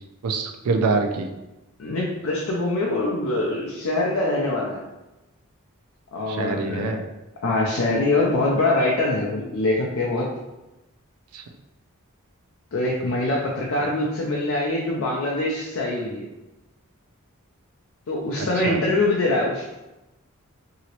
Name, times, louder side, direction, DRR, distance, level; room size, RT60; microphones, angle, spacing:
voice 1, 0.2-1.3 6.3-7.0 11.3-11.4 18.4-18.8, right 4 dB, 85° right, 6 dB, 0.4 m, -25 dB
voice 2, 1.8-4.8 6.1-7.0 7.4-10.3 12.7-16.3 18.1-19.7, left 2 dB, 65° left, -3 dB, 0.4 m, -24 dB
2.9 x 2.8 x 2.9 m, 1.0 s
head